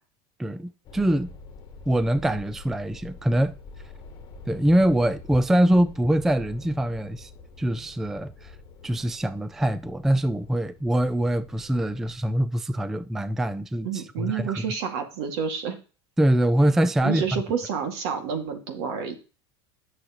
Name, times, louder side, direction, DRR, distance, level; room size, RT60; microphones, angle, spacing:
voice 1, 0.4-1.3 1.9-3.6 4.5-7.3 7.6-8.6 8.8-14.6 16.2-17.4, right 1 dB, 5° right, 0.3 m, -24 dB
sound 1, 0.8-12.2, left 3 dB, 35° left, 1.5 m, -46 dB
voice 2, 13.8-15.8 17.0-19.2, right 6 dB, 70° right, 2.0 m, -29 dB
9.9 x 6.5 x 2.9 m
supercardioid pair, 140°, 14 cm